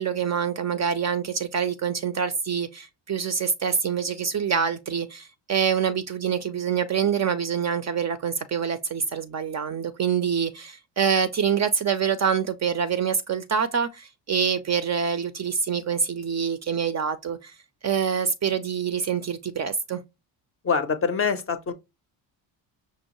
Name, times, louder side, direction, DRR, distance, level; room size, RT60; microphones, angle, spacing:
voice 1, 0.0-17.5 17.8-20.0, right 7 dB, 35° right, 0.4 m, -26 dB
voice 2, 20.6-21.7, left 5 dB, 30° left, 0.5 m, -24 dB
5.4 x 2.0 x 2.9 m
supercardioid pair, 65°, 50 cm